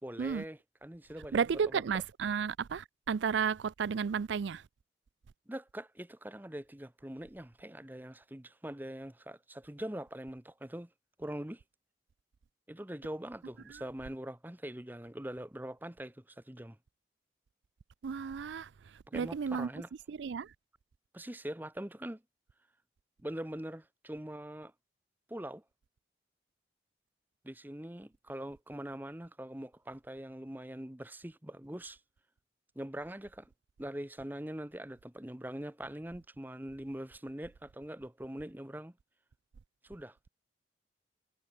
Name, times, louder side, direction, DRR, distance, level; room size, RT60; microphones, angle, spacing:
voice 1, 0.0-1.4 1.7-1.8 5.5-10.9 11.2-11.6 12.7-16.8 19.1-19.9 21.1-22.2 23.2-24.7 25.3-25.6 27.4-32.0 32.8-33.5 33.8-38.9 39.8-40.3, right 1 dB, 10° right, 0.8 m, -43 dB
voice 2, 1.3-4.6 13.7-13.8 18.0-18.7 19.1-19.7 20.1-20.5, right 6 dB, 85° right, 0.4 m, -33 dB
head